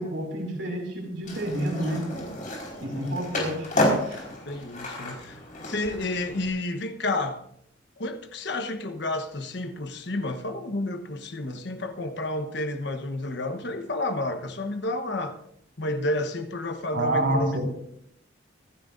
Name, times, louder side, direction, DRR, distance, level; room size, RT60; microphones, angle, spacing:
voice 1, 0.0-2.0 2.8-3.7 4.0-4.2 16.9-17.6, right 1 dB, 80° right, 5.9 m, -28 dB
Skateboard, 1.2-6.5, left 1 dB, 45° left, 4.6 m, -31 dB
voice 2, 4.4-5.4 5.6-7.4 8.0-15.4 15.8-17.6, left 2 dB, 60° left, 1.2 m, -30 dB
24.5 x 12.5 x 2.7 m
head